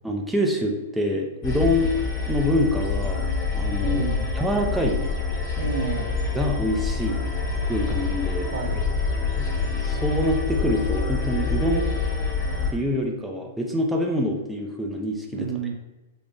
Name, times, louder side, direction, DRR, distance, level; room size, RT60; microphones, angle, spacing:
voice 1, 0.0-1.9 2.3-3.3 3.5-4.0 4.3-5.0 6.3-7.2 7.7-8.5 9.4-9.5 9.8-12.0 12.7-15.5, equal, 5° right, 0 dB, 0.4 m, -25 dB
sound 1, 1.4-12.7, left 4 dB, 25° left, 0.9 m, -26 dB
voice 2, 3.8-4.3 5.6-6.1 8.5-9.0 15.3-15.7, right 5 dB, 70° right, 4 dB, 0.6 m, -30 dB
3.5 x 2.1 x 3.8 m, 1.1 s
hypercardioid pair, 150°, 0 cm